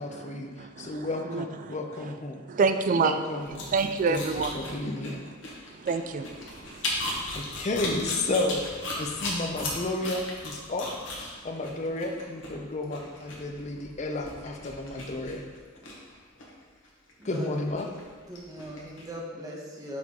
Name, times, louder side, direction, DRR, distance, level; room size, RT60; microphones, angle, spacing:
voice 1, 0.0-2.4 3.0-3.7 4.1-5.2 7.3-10.9 11.1-15.4 17.2-17.9, left 2 dB, 35° left, 3 dB, 0.5 m, -32 dB
voice 2, 0.6-2.1 2.5-3.2 3.5-4.7 5.3-5.4 5.7-7.2, right 4 dB, 40° right, 9 dB, 0.3 m, -29 dB
sound 1, 3.4-19.1, left 2 dB, 70° left, 1.2 m, -37 dB
voice 3, 17.2-17.5 18.3-20.0, equal, 20° right, -3 dB, 1.0 m, -39 dB
6.0 x 4.5 x 3.7 m, 1.5 s
head